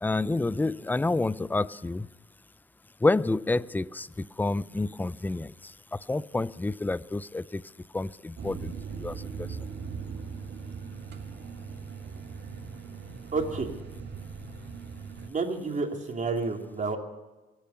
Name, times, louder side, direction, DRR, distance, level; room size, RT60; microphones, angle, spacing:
voice 1, 0.0-2.1 3.0-7.6 7.9-9.5, left 2 dB, 10° left, 0.4 m, -29 dB
sound 1, 8.4-15.3, right 5 dB, 60° right, 1.9 m, -39 dB
voice 2, 13.3-13.7 15.3-17.0, right 4 dB, 40° right, 3.0 m, -30 dB
23.5 x 8.8 x 5.7 m
cardioid pair, 90°, 20 cm